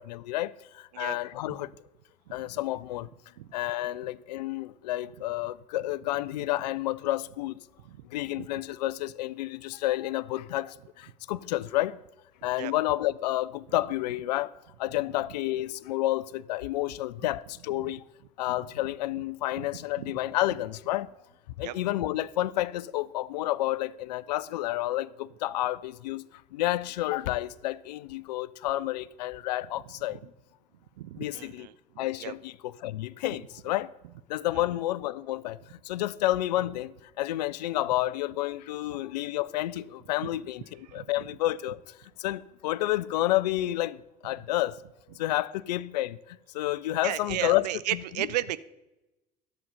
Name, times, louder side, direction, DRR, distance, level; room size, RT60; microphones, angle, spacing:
voice 1, 0.0-1.7 2.3-3.1 3.5-7.6 8.1-12.0 12.4-14.5 14.8-18.0 18.4-21.1 21.6-30.2 31.2-31.7 32.0-33.9 34.3-35.6 35.8-44.8 45.1-47.7 47.9-48.3, left 15 dB, 75° left, 0.4 m, -30 dB
voice 2, 31.0-32.3 34.5-34.6 40.8-41.1 47.0-48.6, right 14 dB, 75° right, 0.5 m, -34 dB
10.5 x 7.0 x 5.5 m
figure-of-eight pair, 60°, 21 cm